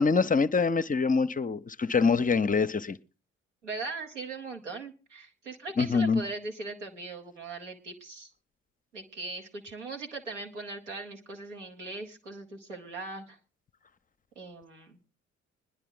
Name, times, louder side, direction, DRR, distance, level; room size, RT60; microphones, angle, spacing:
voice 1, 0.0-3.0 5.8-6.2, left 5 dB, 25° left, 0.6 m, -25 dB
voice 2, 3.6-8.3 8.9-13.4 14.3-15.0, right 3 dB, 90° right, 1.3 m, -40 dB
19.0 x 11.0 x 3.8 m
figure-of-eight pair, 40°, 35 cm